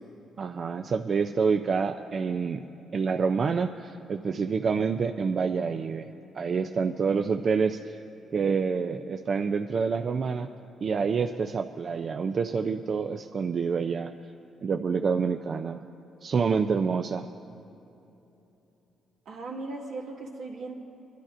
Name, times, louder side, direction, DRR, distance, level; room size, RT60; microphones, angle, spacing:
voice 1, 0.4-2.6 2.9-6.1 6.3-8.0 8.3-10.5 10.8-14.1 14.6-15.8 16.2-17.3, right 5 dB, 50° right, 6 dB, 0.4 m, -27 dB
voice 2, 19.3-20.7, right 3 dB, 85° right, -3 dB, 2.1 m, -37 dB
25.5 x 11.5 x 2.5 m, 3.0 s
cardioid pair, 90°, 0 cm